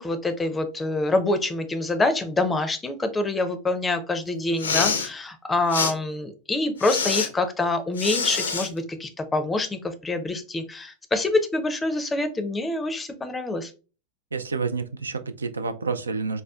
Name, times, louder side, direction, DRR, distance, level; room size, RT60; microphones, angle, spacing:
voice 1, 0.0-13.7, left 2 dB, 15° left, 8 dB, 0.5 m, -26 dB
Respiratory sounds, 4.5-5.1 5.7-5.9 6.8-7.3 8.0-8.7, left 5 dB, 75° left, 0.5 m, -25 dB
voice 2, 14.3-16.4, right 4 dB, 75° right, 10 dB, 0.3 m, -29 dB
4.2 x 2.2 x 2.3 m, 0.34 s
figure-of-eight pair, 85°, 0 cm